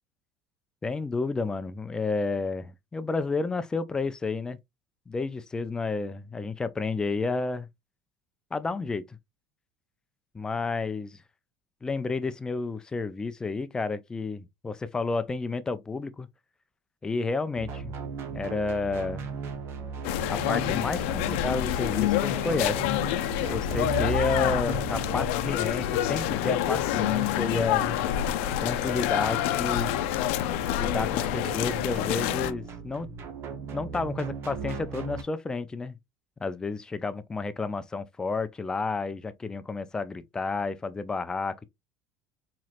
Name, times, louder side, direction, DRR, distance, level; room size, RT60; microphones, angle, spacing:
voice 1, 0.8-4.6 5.1-7.7 8.5-9.2 10.3-11.2 11.8-16.3 17.0-17.9 18.3-19.3 20.3-23.0 23.4-27.8 28.6-29.9 30.8-33.1 33.7-36.0 36.4-41.7, left 3 dB, 10° left, 0.3 m, -31 dB
sound 1, 17.6-35.2, right 5 dB, 40° right, 0.8 m, -37 dB
sound 2, 20.0-32.5, left 13 dB, 85° left, 0.4 m, -27 dB
4.3 x 3.0 x 2.4 m
cardioid pair, 160°, 7 cm